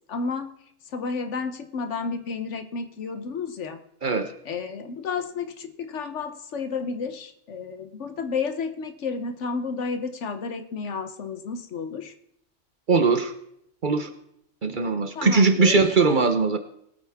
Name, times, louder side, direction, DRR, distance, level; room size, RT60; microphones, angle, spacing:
voice 1, 0.1-0.5 0.9-3.8 4.4-12.1 15.1-15.8, left 5 dB, 70° left, 10 dB, 1.2 m, -31 dB
voice 2, 4.0-4.3 12.9-13.3 13.8-14.1 14.6-16.6, right 4 dB, 45° right, 8 dB, 0.9 m, -20 dB
19.5 x 9.0 x 3.5 m, 0.75 s
omnidirectional pair, 1.3 m